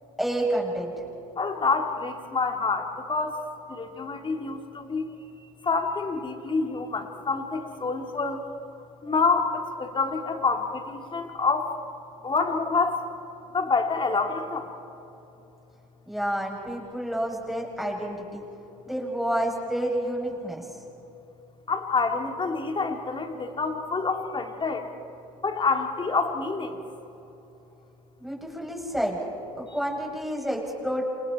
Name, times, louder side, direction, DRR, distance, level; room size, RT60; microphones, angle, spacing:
voice 1, 0.2-0.9 16.1-18.4 18.8-20.6 28.2-29.2 29.6-31.0, right 1 dB, ahead, -1 dB, 8.0 m, -29 dB
voice 2, 1.4-3.3 3.7-5.0 5.6-8.4 9.0-11.7 12.2-13.0 13.5-14.7 21.7-24.9 25.4-26.8, left 4 dB, 25° left, 4 dB, 3.2 m, -27 dB
29.0 x 28.5 x 4.6 m, 3.0 s
hypercardioid pair, 65°, 19 cm